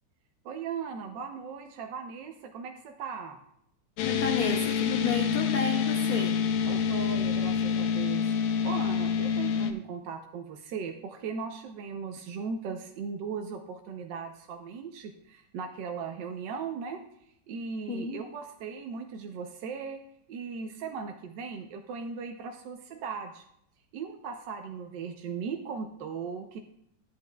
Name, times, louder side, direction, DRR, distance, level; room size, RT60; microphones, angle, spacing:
voice 1, 0.4-3.4 6.7-17.0 17.5-20.0 20.3-23.4 23.9-26.6, right 5 dB, 70° right, 4 dB, 1.2 m, -38 dB
sound 1, 4.0-9.7, left 7 dB, 85° left, 1.6 m, -27 dB
voice 2, 4.0-6.4 17.9-18.2, left 5 dB, 65° left, 3 dB, 0.9 m, -31 dB
14.0 x 8.3 x 2.3 m, 0.74 s
omnidirectional pair, 2.3 m